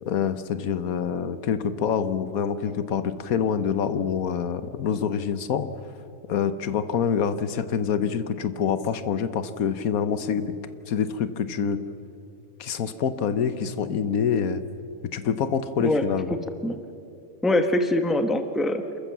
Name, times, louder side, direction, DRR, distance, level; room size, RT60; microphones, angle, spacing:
voice 1, 0.0-5.7 6.3-10.5 10.9-11.8 12.6-14.6 15.1-16.4, left 7 dB, 75° left, 12 dB, 1.3 m, -26 dB
voice 2, 15.8-16.4 16.6-16.8 17.4-18.8, left 1 dB, ahead, 8 dB, 0.9 m, -23 dB
28.0 x 14.0 x 7.3 m, 2.7 s
omnidirectional pair, 1.5 m